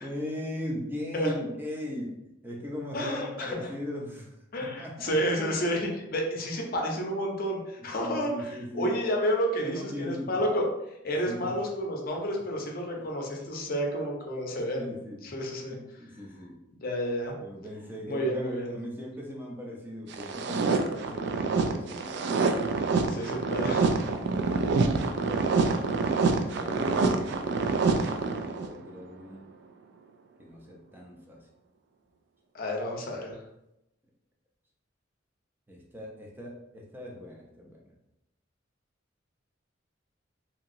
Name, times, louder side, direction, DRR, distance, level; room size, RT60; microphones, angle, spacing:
voice 1, 0.0-2.2 2.4-5.2 8.0-8.9 9.6-10.4 11.2-11.5 13.0-13.1 14.5-15.2 15.7-16.6 17.4-22.3 22.9-23.1 24.6-24.8 25.2-29.5 30.4-31.5 35.7-37.8, left 1 dB, 10° right, -1 dB, 0.5 m, -39 dB
voice 2, 2.9-3.7 4.5-10.6 11.0-14.9 15.2-15.8 16.8-17.3 18.1-18.7 23.1-23.9 32.5-33.4, equal, 50° left, 0 dB, 0.6 m, -30 dB
sound 1, 20.1-28.7, right 4 dB, 65° right, 0.3 m, -26 dB
2.8 x 2.8 x 2.6 m, 0.87 s
head